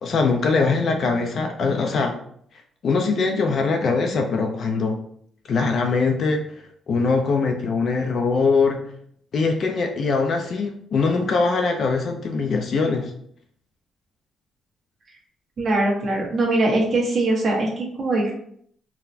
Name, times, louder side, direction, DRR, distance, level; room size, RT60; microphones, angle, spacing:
voice 1, 0.0-2.2 2.8-5.0 5.5-6.4 6.9-8.8 9.3-13.1, left 4 dB, 55° left, 4 dB, 0.4 m, -22 dB
voice 2, 15.6-18.3, right 2 dB, 50° right, -2 dB, 1.2 m, -22 dB
3.9 x 2.1 x 2.7 m, 0.65 s
cardioid pair, 90°, 0 cm